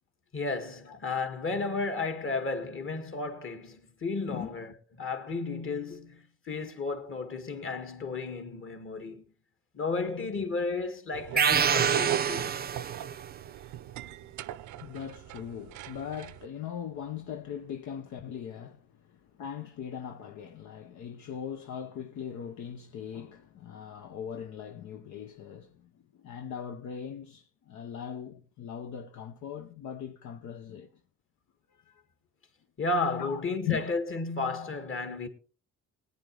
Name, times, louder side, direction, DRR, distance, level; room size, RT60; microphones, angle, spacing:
voice 1, 0.3-9.2 9.7-12.5 32.8-35.3, left 3 dB, 45° left, 2.3 m, -33 dB
sound 1, 11.1-16.5, right 12 dB, 75° right, 0.6 m, -39 dB
sound 2, 11.4-13.2, right 8 dB, 30° right, 0.5 m, -26 dB
voice 2, 14.6-30.9 31.7-32.0 33.2-33.9, left 8 dB, 70° left, 0.9 m, -40 dB
20.0 x 9.6 x 3.4 m
cardioid pair, 90°, 30 cm